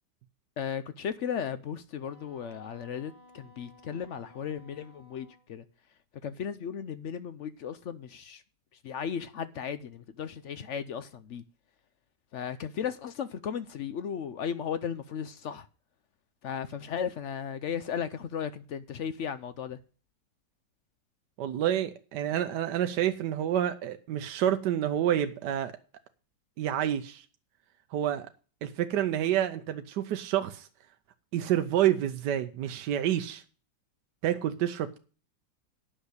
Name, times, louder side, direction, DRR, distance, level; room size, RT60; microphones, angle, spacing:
voice 1, 0.6-5.6 6.2-8.4 8.8-11.4 12.3-15.7 16.4-19.8, left 8 dB, 65° left, 0.7 m, -35 dB
Wind instrument woodwind instrument, 2.0-5.5, left 2 dB, 85° left, 4.6 m, -57 dB
voice 2, 21.4-25.7 26.6-27.2 27.9-28.3 28.6-30.7 31.3-33.4 34.2-35.0, right 11 dB, 70° right, 1.3 m, -28 dB
9.6 x 6.5 x 8.0 m
omnidirectional pair, 1.9 m